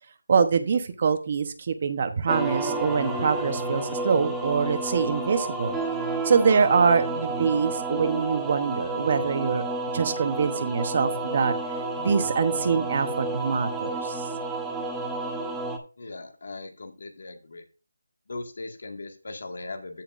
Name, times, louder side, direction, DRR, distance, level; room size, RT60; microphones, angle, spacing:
voice 1, 0.3-5.8 6.2-9.6 9.9-11.5 12.0-14.2, right 5 dB, 35° right, 8 dB, 0.9 m, -24 dB
sound 1, 2.3-15.8, right 2 dB, 5° right, 0.9 m, -31 dB
voice 2, 16.0-17.6 18.3-20.0, left 2 dB, 60° left, 4 dB, 1.9 m, -39 dB
15.5 x 5.9 x 2.5 m, 0.32 s
figure-of-eight pair, 170°, 0 cm